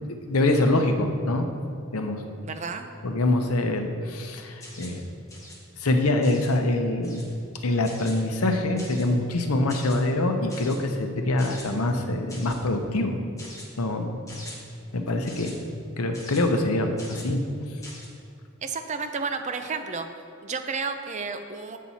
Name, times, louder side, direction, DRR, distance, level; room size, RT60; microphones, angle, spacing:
voice 1, 0.0-1.5 1.9-2.2 3.0-5.0 5.8-7.2 7.6-13.2 13.8-14.2 14.9-15.6 16.0-17.4, left 2 dB, 85° left, 5 dB, 0.8 m, -24 dB
voice 2, 2.4-2.9 18.6-20.1 20.4-21.8, right 4 dB, 35° right, 7 dB, 0.5 m, -31 dB
sound 1, 4.6-5.0 5.3-5.6 6.2-6.6 7.0-7.3 7.8-8.2 8.8-9.1 9.7-10.0 10.5-10.8 11.4-11.7 12.3-12.6 13.4-13.7 14.3-14.6 15.3-15.5 16.1-16.4 17.0-17.3 17.8-18.1, left 2 dB, 15° left, 1.2 m, -43 dB
7.4 x 7.4 x 4.1 m, 2.4 s
head